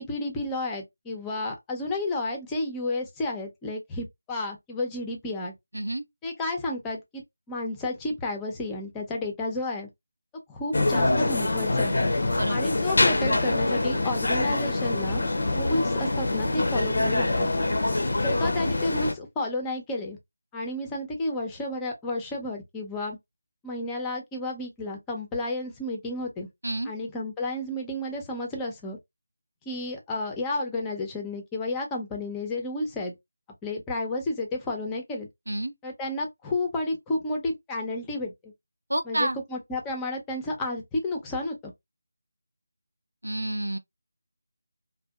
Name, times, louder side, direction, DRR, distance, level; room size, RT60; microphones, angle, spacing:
voice 1, 0.0-5.5 6.2-9.9 10.5-12.0 12.5-15.2 15.5-17.5 18.2-20.2 20.5-23.2 23.6-26.5 26.8-29.0 29.7-33.1 33.6-35.3 35.8-38.5 39.1-41.7, left 2 dB, 10° left, 0.5 m, -31 dB
voice 2, 5.7-6.0 12.3-12.6 26.6-26.9 35.5-35.7 38.9-39.4 43.2-43.8, right 1 dB, 90° right, 0.4 m, -29 dB
sound 1, 10.7-19.1, left 2 dB, 65° left, 0.5 m, -25 dB
2.6 x 2.1 x 2.2 m
figure-of-eight pair, 165°, 0 cm